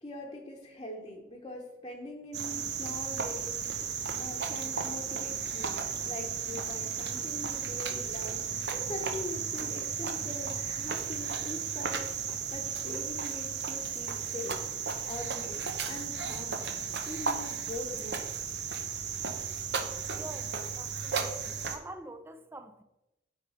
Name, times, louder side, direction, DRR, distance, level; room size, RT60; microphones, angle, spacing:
voice 1, 0.0-5.8 6.0-18.2, left 2 dB, 25° left, 1.0 m, -43 dB
Cricket, 2.3-21.8, right 6 dB, 75° right, 0.9 m, -34 dB
voice 2, 20.1-22.8, right 1 dB, 15° right, 0.5 m, -46 dB
9.1 x 3.5 x 5.6 m
head